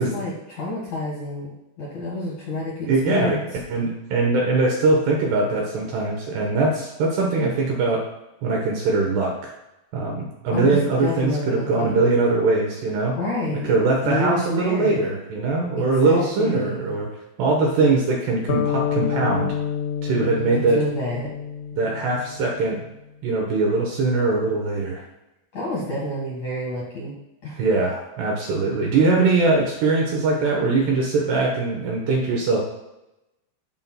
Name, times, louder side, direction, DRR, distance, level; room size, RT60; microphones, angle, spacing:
voice 1, 0.0-3.5 10.5-12.0 13.1-13.8 14.0-15.1 15.8-16.9 20.5-21.3 25.5-27.2 27.4-27.6, left 1 dB, 55° left, -6 dB, 2.2 m, -29 dB
voice 2, 2.9-3.4 3.7-8.0 8.4-9.5 9.9-13.2 13.6-17.1 17.4-19.5 20.0-20.8 21.8-22.8 23.2-25.0 27.6-32.7, right 3 dB, 70° right, -1 dB, 2.6 m, -21 dB
sound 1, 18.5-22.8, left 8 dB, 85° left, 3.2 m, -28 dB
15.0 x 5.8 x 2.2 m, 0.94 s
omnidirectional pair, 5.8 m